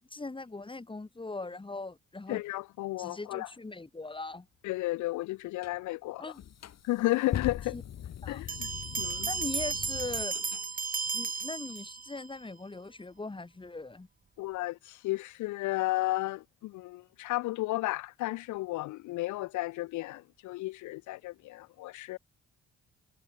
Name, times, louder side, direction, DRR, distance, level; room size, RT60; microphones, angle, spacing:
voice 1, 0.0-2.4 3.0-4.5 6.2-6.4 7.7-7.8 8.2-8.4 9.3-10.4 11.1-14.1, left 3 dB, 15° left, 2.3 m, -40 dB
voice 2, 2.3-3.5 4.6-6.3 6.8-7.7 8.3-8.7 9.0-9.3 14.4-22.2, left 18 dB, 75° left, 0.4 m, -33 dB
sound 1, 5.6-5.8 6.4-10.6, left 10 dB, 60° left, 2.0 m, -40 dB
Bell, 8.5-12.3, right 5 dB, 30° right, 1.3 m, -34 dB
cardioid pair, 90°, 30 cm